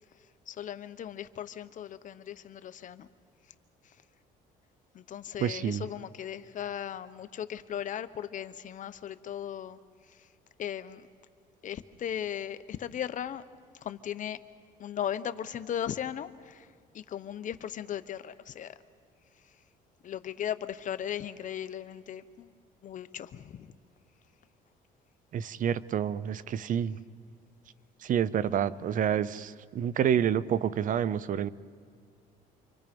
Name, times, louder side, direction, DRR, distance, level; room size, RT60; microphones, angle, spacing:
voice 1, 0.5-3.1 4.9-9.8 10.6-11.1 11.6-13.4 13.8-14.4 14.8-16.7 16.9-18.7 20.0-22.5 22.8-23.7, left 10 dB, 50° left, 12 dB, 0.9 m, -37 dB
voice 2, 5.4-5.8 25.3-27.0 28.0-31.5, right 9 dB, 50° right, 18 dB, 0.6 m, -28 dB
28.5 x 25.0 x 5.3 m, 2.1 s
cardioid pair, 110°, 17 cm